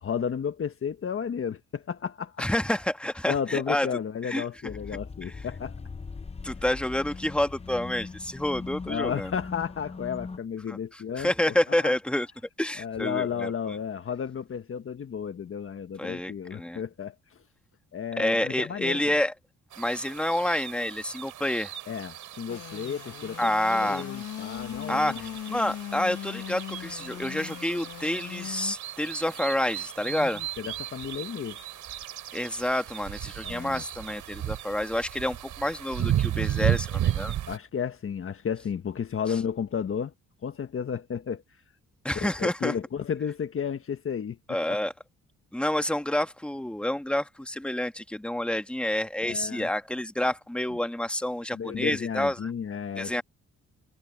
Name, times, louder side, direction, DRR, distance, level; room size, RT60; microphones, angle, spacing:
voice 1, 0.0-2.4 3.3-5.7 8.9-11.9 12.8-17.1 17.9-19.0 21.9-25.3 30.1-31.6 33.4-33.8 37.5-40.1 40.4-41.4 42.1-44.4 49.2-49.7 51.5-53.2, left 7 dB, 45° left, 1.5 m, -33 dB
voice 2, 2.4-3.9 4.3-4.4 6.4-9.3 10.7-10.8 11.1-12.3 12.6-13.5 16.0-16.8 18.2-19.3 19.8-21.7 23.4-24.1 24.9-30.4 32.3-37.3 42.0-42.7 44.5-44.9 45.5-52.5 53.0-53.2, left 1 dB, 5° left, 2.0 m, -28 dB
sound 1, 4.7-10.4, left 4 dB, 20° left, 0.8 m, -40 dB
sound 2, 19.7-37.6, right 11 dB, 75° right, 4.7 m, -34 dB
Engine / Sawing, 22.5-28.8, left 13 dB, 80° left, 2.3 m, -39 dB
cardioid pair, 90°, 30 cm